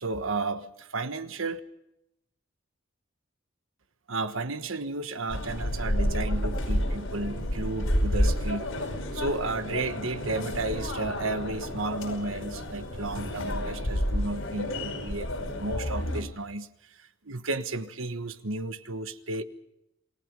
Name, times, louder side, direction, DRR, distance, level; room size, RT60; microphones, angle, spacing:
voice 1, 0.0-1.6 4.1-19.4, right 2 dB, 75° right, 10 dB, 1.3 m, -33 dB
sound 1, 5.3-16.2, equal, 85° left, 5.7 m, -30 dB
28.0 x 19.0 x 5.3 m, 0.83 s
head